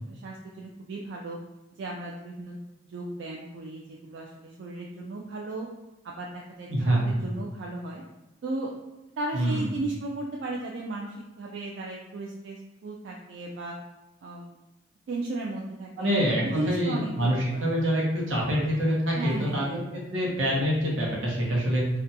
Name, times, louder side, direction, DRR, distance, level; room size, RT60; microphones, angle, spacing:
voice 1, 0.1-1.4 1.8-2.6 2.9-5.7 6.0-8.0 8.4-8.7 9.2-13.8 14.2-14.5 15.1-16.1 16.4-17.7 19.1-19.8, right 2 dB, 65° right, -2 dB, 0.3 m, -35 dB
voice 2, 6.7-7.1 9.3-9.7 16.0-21.8, equal, 85° right, -4 dB, 0.8 m, -26 dB
2.4 x 2.2 x 2.7 m, 1.0 s
head